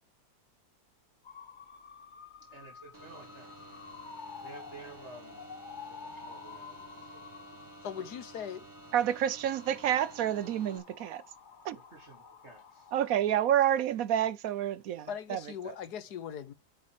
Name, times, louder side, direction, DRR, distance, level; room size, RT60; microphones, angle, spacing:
sound 1, 1.2-13.1, left 6 dB, 40° left, 0.8 m, -50 dB
voice 1, 2.5-3.5 4.4-5.5 5.9-7.3 7.8-8.2 8.9-9.2 11.7-12.9, right 3 dB, 45° right, 2.0 m, -52 dB
sound 2, 2.9-10.8, right 2 dB, 10° right, 1.5 m, -52 dB
voice 2, 7.8-8.6 15.1-16.5, left 8 dB, 75° left, 1.5 m, -39 dB
voice 3, 8.9-11.2 11.6-11.8 12.9-15.4, right 11 dB, 70° right, 1.0 m, -29 dB
9.6 x 7.5 x 3.0 m
omnidirectional pair, 1.7 m